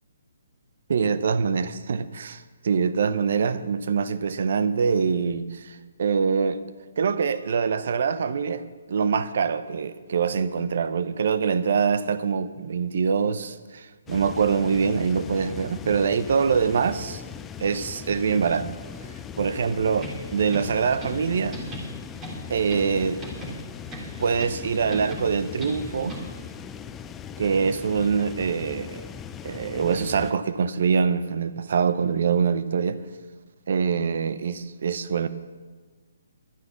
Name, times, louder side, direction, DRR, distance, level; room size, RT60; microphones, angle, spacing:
voice 1, 0.9-6.6 7.0-8.6 8.9-17.2 17.6-18.7 19.4-21.6 22.5-23.2 24.2-26.2 27.4-29.0 29.4-33.0 33.7-35.3, right 6 dB, 55° right, 13 dB, 0.8 m, -24 dB
sound 1, 14.1-30.3, left 8 dB, 15° left, 0.5 m, -39 dB
sound 2, 19.9-26.5, right 1 dB, 15° right, 2.7 m, -39 dB
12.0 x 9.5 x 7.0 m, 1.4 s
figure-of-eight pair, 135°, 0 cm